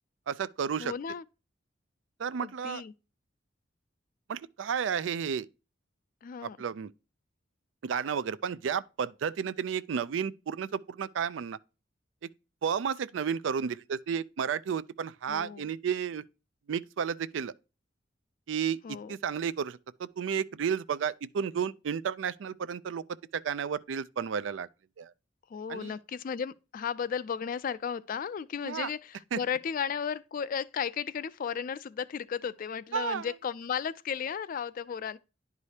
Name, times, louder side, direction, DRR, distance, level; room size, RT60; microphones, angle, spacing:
voice 1, 0.3-0.9 2.2-2.8 4.3-5.5 6.4-6.9 7.8-11.6 12.6-16.2 16.7-17.5 18.5-18.8 19.1-23.0 23.3-24.7 25.0-25.1 25.7-25.9 28.6-28.9 29.3-29.4 32.9-33.3, right 7 dB, 80° right, 0.4 m, -32 dB
voice 2, 0.8-1.2 2.4-2.9 6.2-6.6 15.3-15.7 18.8-19.1 25.5-35.2, left 7 dB, 45° left, 0.3 m, -34 dB
10.5 x 4.8 x 2.8 m
head